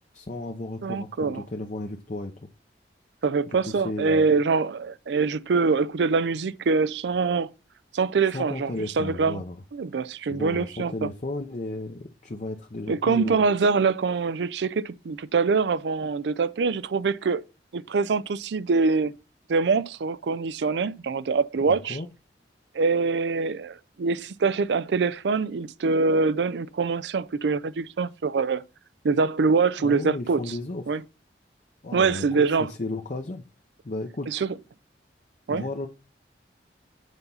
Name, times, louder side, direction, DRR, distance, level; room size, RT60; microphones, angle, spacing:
voice 1, 0.1-2.5 3.5-4.3 8.3-9.6 10.3-13.4 21.7-22.1 29.8-31.0 31.8-33.4 33.8-34.3 35.5-35.9, left 2 dB, 45° left, 0.7 m, -34 dB
voice 2, 0.8-1.4 3.2-7.5 7.9-9.4 9.7-11.1 12.9-17.4 17.7-19.1 19.5-22.0 22.7-28.6 29.0-30.6 30.9-31.0 31.9-32.7 34.3-34.5 35.5-35.6, right 4 dB, 75° right, 0.4 m, -24 dB
8.1 x 4.0 x 5.6 m
head